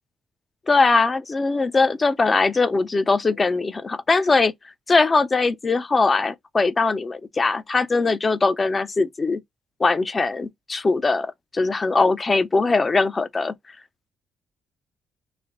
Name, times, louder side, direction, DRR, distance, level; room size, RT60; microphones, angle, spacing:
voice 1, 0.7-4.5 4.9-9.4 9.8-13.5, left 3 dB, 30° left, 0.5 m, -21 dB
3.3 x 2.1 x 3.9 m
cardioid pair, 90°, 0 cm